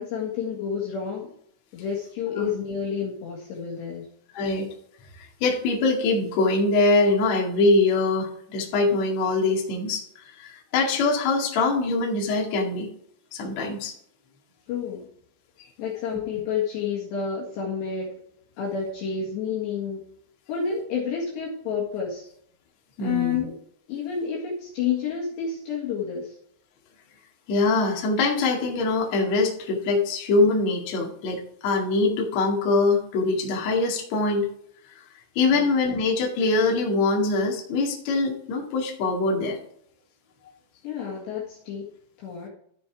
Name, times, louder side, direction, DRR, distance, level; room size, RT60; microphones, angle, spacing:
voice 1, 0.0-1.3 1.7-4.1 14.7-15.1 15.8-18.1 18.6-20.0 20.5-22.3 23.0-23.5 23.9-26.4 35.5-35.7 40.8-41.9 42.2-42.5, left 6 dB, 65° left, -4 dB, 3.6 m, -29 dB
voice 2, 4.3-4.7 5.4-12.9 13.3-13.9 23.0-23.4 27.5-34.5 35.4-39.6, left 3 dB, 50° left, -1 dB, 2.4 m, -23 dB
12.5 x 6.8 x 3.5 m, 0.66 s
omnidirectional pair, 5.9 m